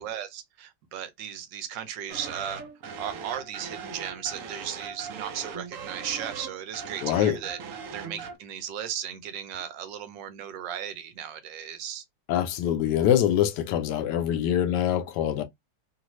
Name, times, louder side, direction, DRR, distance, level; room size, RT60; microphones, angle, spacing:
voice 1, 0.0-2.6 3.0-7.6 7.9-12.0, right 9 dB, 90° right, 1.4 m, -36 dB
sound 1, 2.1-8.4, right 6 dB, 60° right, 0.9 m, -40 dB
voice 2, 7.0-7.4 12.3-15.4, left 10 dB, 80° left, 1.2 m, -24 dB
3.0 x 2.5 x 3.0 m
omnidirectional pair, 1.9 m